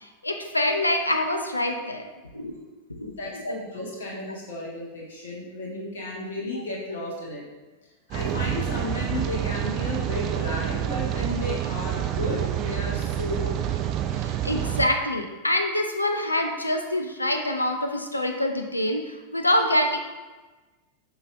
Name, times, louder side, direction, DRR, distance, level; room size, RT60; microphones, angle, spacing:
voice 1, 0.0-2.1 2.3-2.6 2.9-3.5 14.2-20.0, left 1 dB, 85° left, 4 dB, 0.5 m, -26 dB
voice 2, 3.0-7.4 8.1-13.6, left 2 dB, 60° left, -4 dB, 1.9 m, -33 dB
Rain, 8.1-14.9, right 11 dB, 35° right, 0.4 m, -28 dB
6.9 x 5.7 x 2.6 m, 1.2 s
figure-of-eight pair, 90°, 0 cm